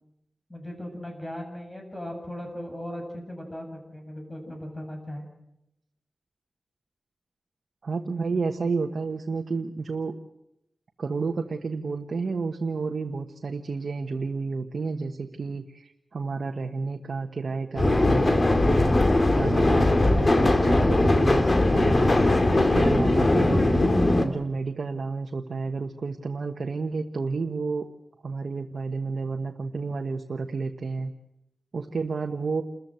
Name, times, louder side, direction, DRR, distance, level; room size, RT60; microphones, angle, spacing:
voice 1, 0.5-5.3, left 1 dB, 15° left, 2 dB, 7.9 m, -38 dB
voice 2, 7.8-10.1 11.0-19.0 19.3-22.1 22.5-23.8 24.2-27.9 28.2-31.1 31.7-32.6, right 4 dB, 75° right, 4 dB, 1.3 m, -30 dB
sound 1, 17.8-24.2, left 2 dB, 40° left, 2.4 m, -20 dB
29.0 x 14.5 x 7.9 m, 0.85 s
wide cardioid pair, 75°, 0 cm